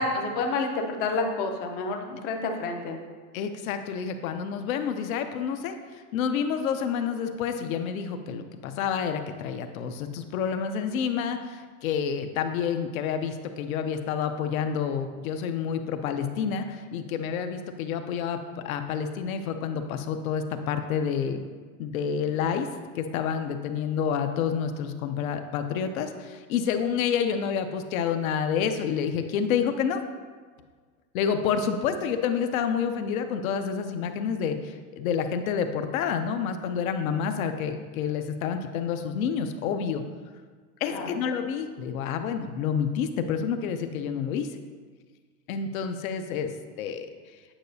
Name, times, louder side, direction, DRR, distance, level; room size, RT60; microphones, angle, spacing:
voice 1, 0.0-3.0 40.9-41.1, left 3 dB, 25° left, 3 dB, 0.4 m, -29 dB
voice 2, 3.3-21.4 21.8-22.7 23.0-30.0 31.1-40.0 40.8-44.5 45.5-46.5 46.8-47.1, left 7 dB, 65° left, 7 dB, 0.6 m, -29 dB
8.8 x 4.7 x 2.7 m, 1.5 s
supercardioid pair, 150°, 46 cm